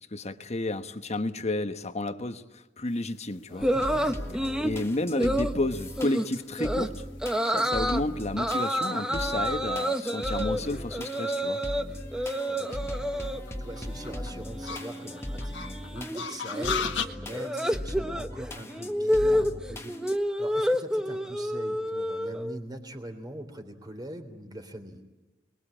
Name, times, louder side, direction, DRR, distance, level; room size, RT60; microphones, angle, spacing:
voice 1, 0.1-3.7 3.9-4.2 4.6-7.0 7.4-11.6, left 2 dB, 35° left, 1.2 m, -31 dB
sound 1, 3.2-17.1, left 6 dB, 75° left, 1.8 m, -40 dB
voice 2, 3.5-4.0 12.2-13.1 13.6-25.0, right 1 dB, 20° right, 3.5 m, -42 dB
sound 2, 3.6-20.2, left 1 dB, 15° left, 1.7 m, -39 dB
sound 3, 3.6-4.8 5.2-5.5 6.0-6.3 6.6-6.9 7.2-8.0 8.4-11.8 12.1-13.4 13.7-14.2 14.4-22.6, equal, 5° right, 1.0 m, -29 dB
28.5 x 21.5 x 8.8 m
head